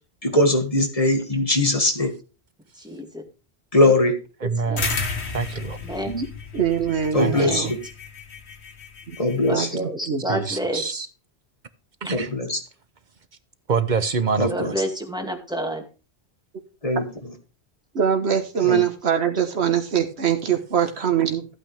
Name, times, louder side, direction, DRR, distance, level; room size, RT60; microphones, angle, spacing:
voice 1, 0.2-2.1 3.7-4.1 7.1-7.6 9.2-9.7 12.1-12.6 14.4-14.7 16.8-17.0 18.7-18.8, left 2 dB, 35° left, 2.1 m, -20 dB
voice 2, 2.7-3.2 3.8-3.9 4.4-4.9 5.8-6.3 7.3-7.7 9.4-10.8 14.5-15.9, equal, 5° right, 2.1 m, -29 dB
voice 3, 4.4-4.9 5.3-5.8 7.1-7.7 10.3-11.1 12.1-12.3 13.7-14.7, right 5 dB, 50° right, 1.0 m, -26 dB
sound 1, 4.8-9.7, left 4 dB, 85° left, 1.7 m, -33 dB
voice 4, 6.5-7.7 9.1-9.2 9.5-9.7 10.1-10.2 17.9-21.5, right 8 dB, 80° right, 1.5 m, -23 dB
14.5 x 8.9 x 3.4 m
omnidirectional pair, 1.1 m